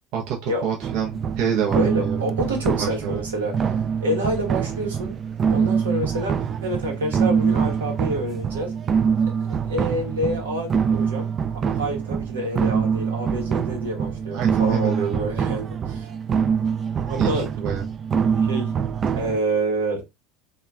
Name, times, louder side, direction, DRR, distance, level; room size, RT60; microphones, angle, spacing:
voice 1, 0.1-2.2 2.8-3.2 14.3-14.9 17.2-17.8, right 8 dB, 60° right, 0.7 m, -27 dB
sound 1, 0.8-19.4, right 6 dB, 35° right, 0.3 m, -24 dB
voice 2, 1.7-3.5 4.0-5.2 5.5-8.7 9.2-16.1 17.0-17.5 18.5-18.7 19.2-20.0, right 1 dB, 80° right, 1.0 m, -28 dB
2.9 x 2.3 x 2.3 m
hypercardioid pair, 75°, 0 cm